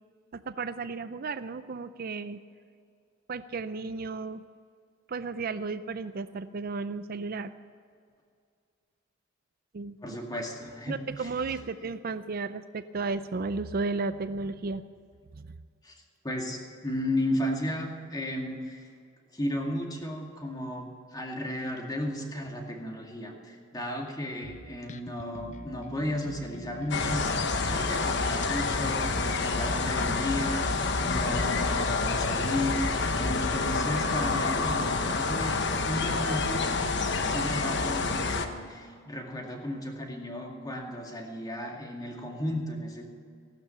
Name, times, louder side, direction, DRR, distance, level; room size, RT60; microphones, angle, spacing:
voice 1, 0.3-2.4 3.3-4.4 5.1-7.5 9.7-9.9 10.9-14.8 15.3-15.6, right 4 dB, 50° right, 12 dB, 0.5 m, -34 dB
voice 2, 10.0-11.6 15.8-15.9 16.2-18.9 19.3-36.8 37.2-43.1, left 1 dB, 20° left, 1 dB, 2.2 m, -34 dB
Bass guitar, 24.4-34.0, left 2 dB, 40° left, 0.7 m, -45 dB
sound 1, 26.9-38.5, left 3 dB, 65° left, 1.1 m, -28 dB
16.0 x 12.0 x 7.1 m, 2.3 s
head